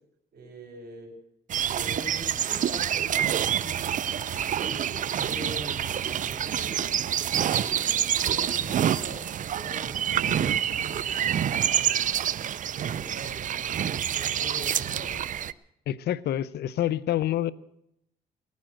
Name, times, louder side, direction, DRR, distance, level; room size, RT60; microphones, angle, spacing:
voice 1, 0.3-1.1 1.6-3.9 4.2-4.3 4.6-6.9 7.3-9.2 9.5-12.0 12.8-15.2, right 1 dB, 70° right, 5 dB, 4.6 m, -43 dB
sound 1, 1.5-15.5, right 9 dB, 50° right, 0.5 m, -27 dB
voice 2, 15.9-17.5, left 12 dB, 75° left, 19 dB, 0.6 m, -27 dB
19.0 x 9.3 x 7.7 m, 0.78 s
cardioid pair, 90°, 17 cm